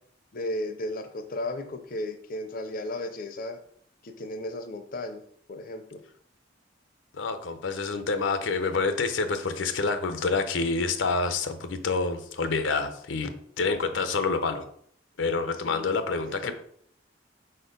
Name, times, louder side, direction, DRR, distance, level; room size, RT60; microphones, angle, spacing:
voice 1, 0.3-3.6 4.0-5.2 5.5-6.0 15.6-15.9 16.2-16.5, left 1 dB, 50° left, 7 dB, 0.5 m, -34 dB
voice 2, 7.1-13.3 13.6-14.7 15.2-16.5, left 4 dB, 85° left, 9 dB, 0.6 m, -27 dB
4.4 x 4.2 x 5.1 m, 0.64 s
head